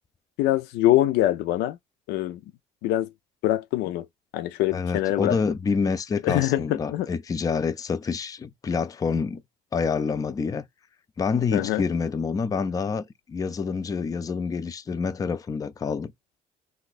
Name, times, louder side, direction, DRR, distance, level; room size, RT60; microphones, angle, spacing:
voice 1, 0.4-1.8 2.1-2.4 2.8-3.1 3.4-4.1 4.3-5.4 6.2-7.1 11.5-11.8, left 14 dB, 85° left, 0.4 m, -24 dB
voice 2, 4.7-9.4 9.7-10.6 11.2-16.1, left 5 dB, 20° left, 0.4 m, -27 dB
2.7 x 2.3 x 3.9 m
cardioid pair, 110°, 17 cm